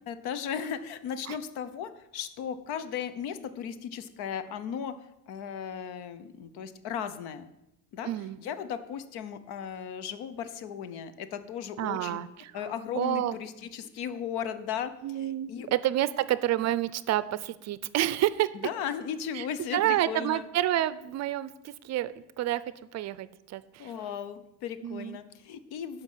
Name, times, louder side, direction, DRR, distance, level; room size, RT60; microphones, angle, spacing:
voice 1, 0.1-4.9 5.3-7.5 7.9-8.1 8.4-12.2 12.5-14.9 15.2-15.7 18.6-20.5 23.8-26.0, left 8 dB, 80° left, 12 dB, 0.9 m, -36 dB
voice 2, 8.0-8.4 11.8-12.7 12.9-13.4 15.0-18.5 19.3-22.6 22.9-23.9 24.8-25.2, right 13 dB, 45° right, 16 dB, 0.5 m, -29 dB
11.5 x 5.2 x 7.4 m, 0.87 s
cardioid pair, 170°, 38 cm